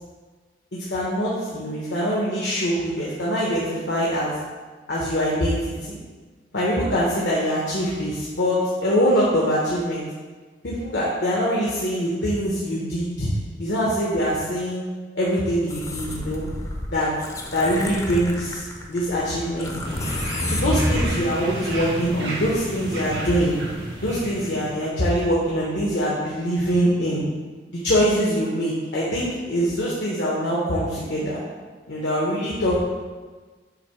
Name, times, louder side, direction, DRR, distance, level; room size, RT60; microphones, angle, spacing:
voice 1, 0.7-4.4 4.9-6.0 6.5-10.0 10.6-13.3 13.6-14.8 15.1-16.4 16.9-17.1 17.5-20.0 20.5-23.6 24.0-27.2 27.8-31.4 31.9-32.8, equal, 85° left, -6 dB, 1.1 m, -23 dB
sound 1, 15.7-21.1, left 1 dB, 20° left, 0.6 m, -29 dB
sound 2, 19.8-24.9, right 1 dB, 75° right, 1.5 m, -32 dB
7.9 x 2.7 x 4.5 m, 1.4 s
head